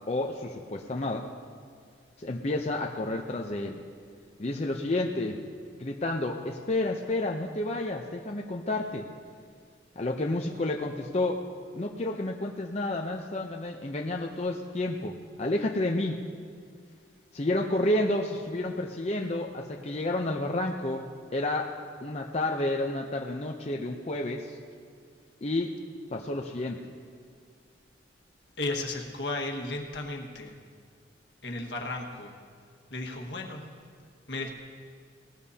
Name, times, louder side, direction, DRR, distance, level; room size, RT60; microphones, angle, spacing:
voice 1, 0.1-1.3 2.2-3.8 4.4-5.4 5.8-9.1 10.0-11.4 11.7-16.2 17.3-21.1 21.3-21.7 22.0-24.6 25.4-25.7 26.1-26.8, left 2 dB, 35° left, 1 dB, 0.6 m, -30 dB
voice 2, 28.6-30.5 31.4-32.3 32.9-33.6 34.3-34.6, left 2 dB, 70° left, 1 dB, 1.6 m, -34 dB
19.0 x 18.5 x 2.8 m, 2.1 s
head